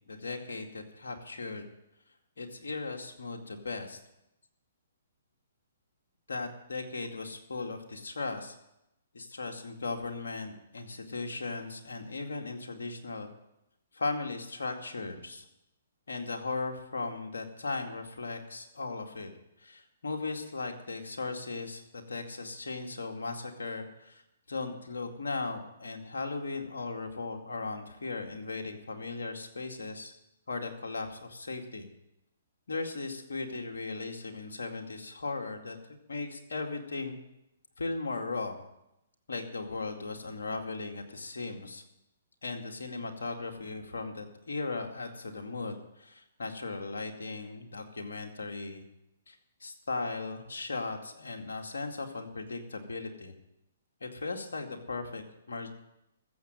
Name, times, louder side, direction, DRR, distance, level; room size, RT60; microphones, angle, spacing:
voice 1, 0.1-1.7 2.4-4.0 6.3-8.6 9.1-13.3 13.9-15.4 16.1-19.3 19.6-24.2 24.5-30.1 30.5-31.9 32.7-35.8 36.1-37.2 37.8-38.7 39.3-41.8 42.4-48.8 49.3-49.4 49.6-53.3 54.0-55.7, left 3 dB, 75° left, 3 dB, 2.3 m, -37 dB
14.5 x 7.7 x 9.2 m, 0.87 s
hypercardioid pair, 130°, 0 cm